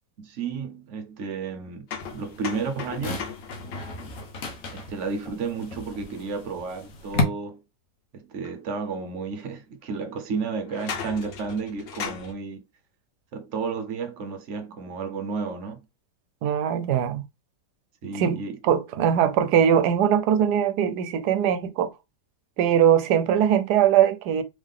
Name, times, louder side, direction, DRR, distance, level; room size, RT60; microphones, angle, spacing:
voice 1, 0.2-3.2 4.7-7.6 8.1-12.6 13.3-15.8 18.0-18.6, right 5 dB, 55° right, 1.0 m, -32 dB
sound 1, 1.9-5.7 8.4-8.5 9.4-9.5 10.6-12.3, left 6 dB, 80° left, 1.5 m, -38 dB
sound 2, 2.0-7.2, left 4 dB, 55° left, 1.4 m, -34 dB
voice 2, 16.4-17.2 18.1-18.4 18.6-21.9 22.6-24.4, right 9 dB, 75° right, 1.2 m, -21 dB
3.6 x 3.5 x 3.6 m
omnidirectional pair, 1.8 m